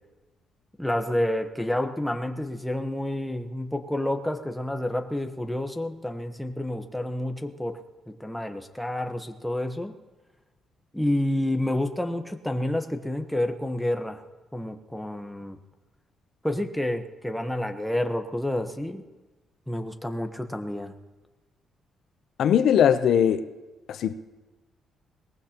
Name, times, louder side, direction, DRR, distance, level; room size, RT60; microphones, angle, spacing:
voice 1, 0.8-7.8 8.2-9.9 10.9-14.2 14.5-15.6 16.4-19.0 19.7-20.9, left 1 dB, 5° left, 1.1 m, -29 dB
voice 2, 22.4-23.4 23.9-24.1, left 9 dB, 70° left, 0.7 m, -20 dB
22.0 x 19.0 x 3.0 m
cardioid pair, 110°, 0 cm